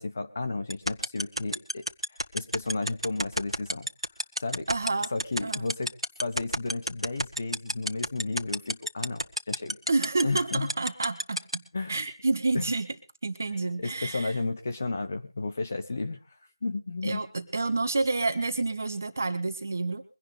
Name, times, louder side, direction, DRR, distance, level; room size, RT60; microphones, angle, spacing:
voice 1, 0.0-1.8 2.3-3.9 4.4-4.7 5.1-5.9 6.2-9.8 10.2-10.7 11.7-12.0 12.5-12.7 13.8-17.2, left 3 dB, 25° left, 7 dB, 1.1 m, -33 dB
sound 1, 0.7-11.6, equal, 90° right, 1.5 m, -27 dB
voice 2, 4.7-5.1 5.4-5.7 9.9-11.6 11.9-12.9 13.2-14.3 17.0-20.0, right 3 dB, 30° right, 9 dB, 1.5 m, -29 dB
23.5 x 11.0 x 3.3 m, 0.30 s
figure-of-eight pair, 170°, 3 cm